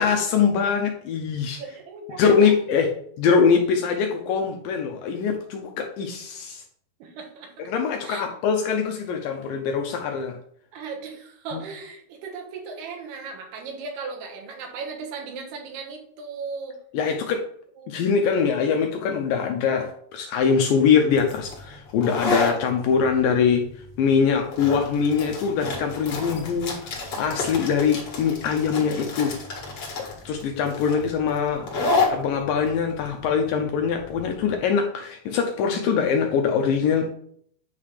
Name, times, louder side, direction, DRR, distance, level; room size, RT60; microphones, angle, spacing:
voice 1, 0.0-1.6 2.2-2.9 3.2-6.6 7.7-10.4 11.5-11.6 16.9-17.4 17.9-23.7 24.0-26.8 27.1-29.4 30.3-31.7 32.1-37.1, left 6 dB, 85° left, 4 dB, 2.0 m, -23 dB
voice 2, 1.6-2.9 3.5-3.9 7.0-7.7 8.0-8.3 10.7-16.8 17.8-18.0, right 4 dB, 75° right, 2 dB, 3.2 m, -37 dB
sound 1, 21.1-34.5, left 3 dB, 45° left, 2.0 m, -30 dB
9.4 x 3.3 x 5.7 m, 0.63 s
omnidirectional pair, 4.8 m